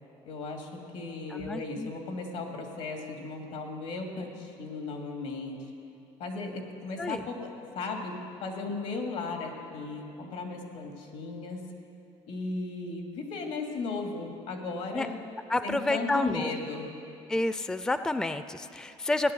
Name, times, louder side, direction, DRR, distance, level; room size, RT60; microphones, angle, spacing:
voice 1, 0.3-5.7 6.2-11.7 12.3-15.2 15.6-16.9, left 3 dB, 80° left, 2 dB, 2.5 m, -36 dB
voice 2, 1.3-1.9 7.0-7.2 14.9-15.1 15.5-16.5 17.3-19.3, left 2 dB, 5° left, 11 dB, 0.4 m, -29 dB
16.0 x 10.5 x 7.9 m, 2.7 s
cardioid pair, 125°, 12 cm